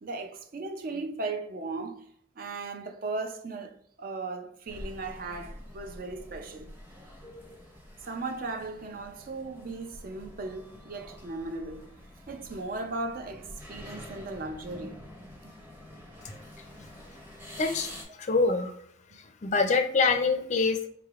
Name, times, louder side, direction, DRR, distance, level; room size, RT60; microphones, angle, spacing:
voice 1, 0.0-2.0 2.4-6.7 8.0-11.9 12.3-15.0 15.4-15.5 18.1-18.2 19.1-19.2, right 3 dB, 50° right, 0.4 m, -37 dB
sound 1, 4.7-18.0, equal, 10° right, 0.7 m, -47 dB
voice 2, 17.6-18.7 19.4-20.9, left 4 dB, 40° left, 0.4 m, -25 dB
3.6 x 3.2 x 2.4 m
head